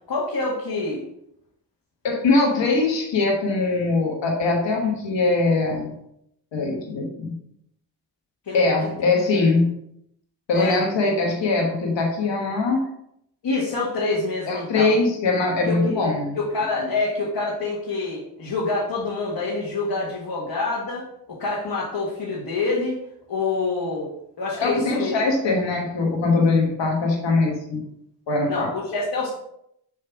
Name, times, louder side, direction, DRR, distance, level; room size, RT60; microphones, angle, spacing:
voice 1, 0.1-1.0 8.5-8.6 10.5-10.8 13.4-14.9 15.7-23.0 23.3-24.1 24.4-25.2 28.5-29.3, left 3 dB, 60° left, -5 dB, 1.7 m, -26 dB
voice 2, 2.0-5.9 6.5-7.3 8.5-9.7 10.5-12.8 14.5-16.4 16.8-16.9 24.6-27.8 28.3-28.7, left 3 dB, 80° left, 0 dB, 1.5 m, -22 dB
7.4 x 3.3 x 4.6 m, 0.76 s
cardioid pair, 55°, 43 cm